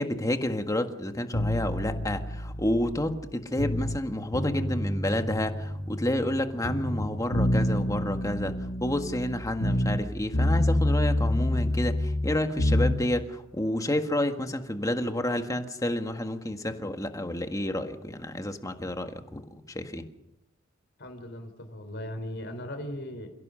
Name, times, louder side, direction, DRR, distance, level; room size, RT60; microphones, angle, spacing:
voice 1, 0.0-8.5 8.8-20.0, left 1 dB, 15° left, 6 dB, 1.7 m, -30 dB
sound 1, 1.3-4.0 4.3-6.4 6.6-10.1 10.3-13.0, left 1 dB, 75° left, 3.6 m, -28 dB
voice 2, 21.0-23.3, left 1 dB, 55° left, 7 dB, 4.0 m, -38 dB
29.0 x 16.5 x 6.4 m, 0.85 s
head